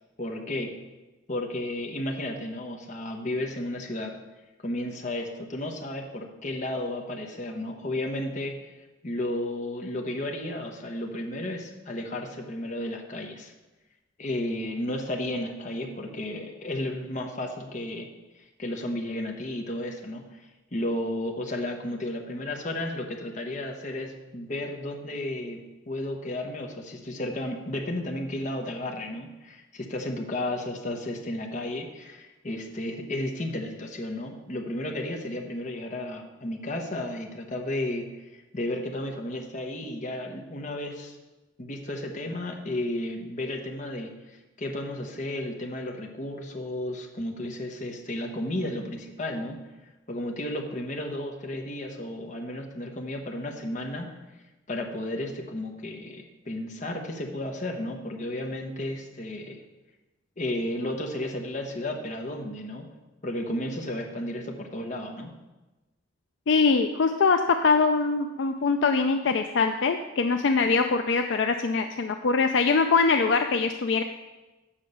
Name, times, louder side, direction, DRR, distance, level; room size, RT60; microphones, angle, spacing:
voice 1, 0.2-0.7 1.3-4.1 4.6-8.7 9.0-13.5 14.2-18.1 18.6-20.4 20.7-38.1 38.5-41.2 41.6-49.6 50.1-54.1 54.7-59.6 60.4-62.9 63.2-65.3, left 1 dB, 40° left, 2 dB, 1.0 m, -33 dB
voice 2, 66.5-74.0, left 4 dB, 65° left, 6 dB, 0.4 m, -23 dB
7.4 x 5.6 x 6.6 m, 1.1 s
head